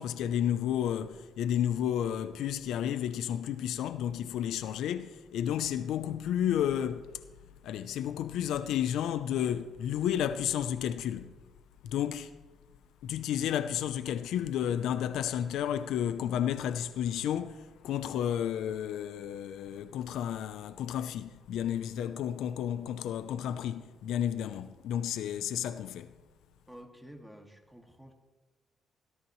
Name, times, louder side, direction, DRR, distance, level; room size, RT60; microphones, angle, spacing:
voice 1, 0.0-7.1 7.6-11.3 11.8-12.3 13.0-26.1, left 10 dB, 85° left, 0.6 m, -32 dB
voice 2, 26.7-28.1, equal, ahead, 2.1 m, -50 dB
17.0 x 14.0 x 3.2 m
cardioid pair, 90°, 0 cm